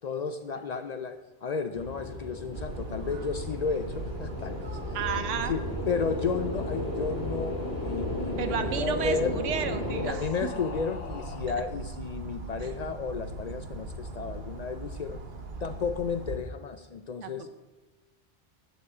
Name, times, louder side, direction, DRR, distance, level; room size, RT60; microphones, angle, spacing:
voice 1, 0.0-5.0 5.3-5.6 5.9-9.4 10.0-15.2 15.6-17.5, left 5 dB, 70° left, 8 dB, 0.4 m, -33 dB
sound 1, 1.8-10.0, left 1 dB, 30° left, 2.3 m, -34 dB
sound 2, 2.5-16.4, right 2 dB, 60° right, 1.0 m, -39 dB
voice 2, 4.9-5.6 8.4-10.5 17.2-17.5, right 7 dB, 80° right, 9 dB, 1.0 m, -32 dB
sound 3, 5.1-11.6, left 4 dB, 85° left, 1.3 m, -49 dB
11.0 x 4.6 x 6.6 m, 1.2 s
omnidirectional pair, 1.2 m